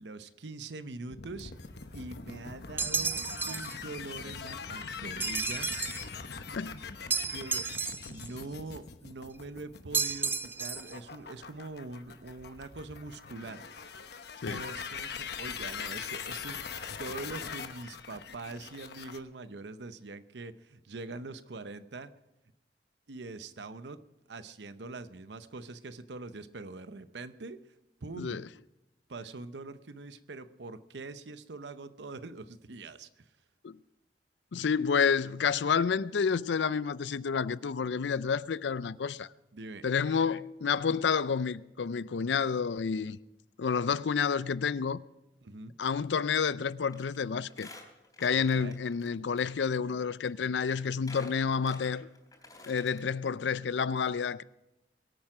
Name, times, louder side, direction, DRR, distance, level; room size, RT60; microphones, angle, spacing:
voice 1, 0.0-1.5 1.9-5.8 7.2-7.7 8.0-13.7 14.5-16.6 17.0-22.1 23.1-24.0 24.3-27.6 28.0-28.4 29.1-33.2 39.5-39.8 45.4-45.7 48.3-48.8, right 3 dB, 75° right, 0.8 m, -43 dB
sound 1, 1.1-19.2, left 6 dB, 65° left, 1.0 m, -42 dB
sound 2, 2.8-3.8 5.2-6.1 7.1-8.3 9.9-11.0, right 4 dB, 10° right, 0.4 m, -32 dB
voice 2, 6.4-6.8 14.4-14.6 28.2-28.5 33.6-33.8 34.5-39.3 39.8-43.2 43.6-45.0 45.8-47.7 48.2-52.1 52.7-54.4, left 6 dB, 85° left, 0.5 m, -29 dB
Squeak, 46.9-47.2 47.5-49.1 49.4-49.5 50.3-50.4 50.7-53.0 53.4-53.5 53.7-53.8, left 2 dB, 20° left, 3.7 m, -50 dB
23.0 x 8.9 x 4.9 m
head